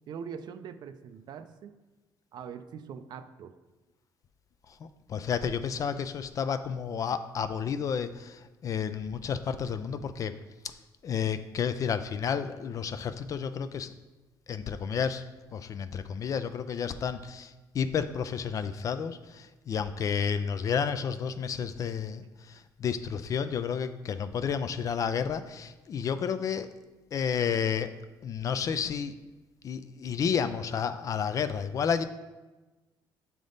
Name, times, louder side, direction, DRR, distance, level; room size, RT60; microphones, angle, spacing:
voice 1, 0.1-1.8 2.3-3.6, right 7 dB, 60° right, 10 dB, 0.4 m, -42 dB
voice 2, 5.1-10.3 11.0-13.9 14.5-15.2 15.5-26.7 27.1-27.9 28.2-29.2 29.6-32.0, left 7 dB, 45° left, 11 dB, 0.3 m, -31 dB
7.3 x 3.5 x 3.9 m, 1.2 s
cardioid pair, 120°, 8 cm